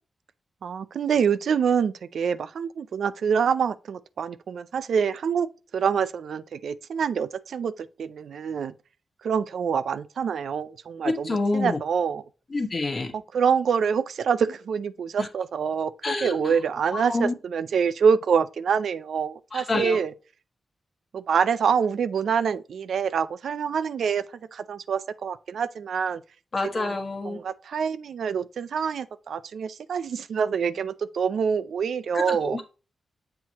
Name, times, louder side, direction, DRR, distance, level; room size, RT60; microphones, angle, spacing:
voice 1, 0.6-8.7 9.2-12.2 13.1-20.1 21.1-24.2 24.5-26.2 26.8-27.0 27.2-32.6, right 6 dB, 75° right, 0.4 m, -26 dB
voice 2, 11.0-11.8 12.5-13.1 15.2-15.3 16.0-16.5 16.9-17.3 19.5-20.0 26.5-27.4 32.1-32.7, left 2 dB, 30° left, 1.1 m, -27 dB
7.5 x 4.5 x 2.8 m
wide cardioid pair, 170°, 0 cm